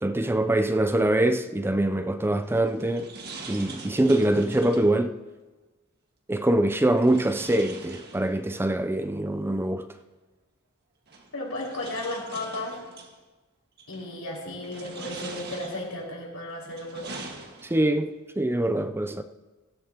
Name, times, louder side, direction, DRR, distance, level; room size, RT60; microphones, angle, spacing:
voice 1, 0.0-3.1 3.5-5.1 6.3-9.9 17.6-19.2, right 1 dB, 10° right, 0.4 m, -24 dB
sound 1, 2.4-5.0 7.0-8.6 10.0-10.1 11.1-13.1 13.8-14.2 14.6-16.1 16.6-18.0, right 3 dB, 50° right, 1.7 m, -43 dB
voice 2, 11.3-12.9 13.9-17.2, left 1 dB, 85° left, 5.2 m, -34 dB
18.0 x 15.5 x 2.9 m
head